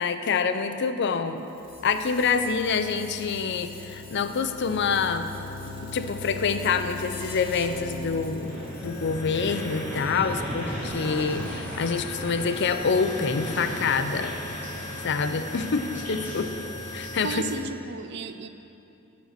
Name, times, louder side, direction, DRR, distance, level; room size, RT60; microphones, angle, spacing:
voice 1, 0.0-1.4 1.8-5.3 5.9-14.3 15.0-16.5 16.9-17.4, left 5 dB, 55° left, 9 dB, 0.5 m, -26 dB
sound 1, 1.3-17.6, left 2 dB, 25° left, 2.0 m, -42 dB
sound 2, 1.9-8.7, left 2 dB, 85° left, 1.3 m, -40 dB
sound 3, 8.4-17.5, equal, 10° left, 2.5 m, -36 dB
voice 2, 17.2-18.5, right 4 dB, 55° right, 10 dB, 0.5 m, -33 dB
9.1 x 6.4 x 6.6 m, 2.9 s
head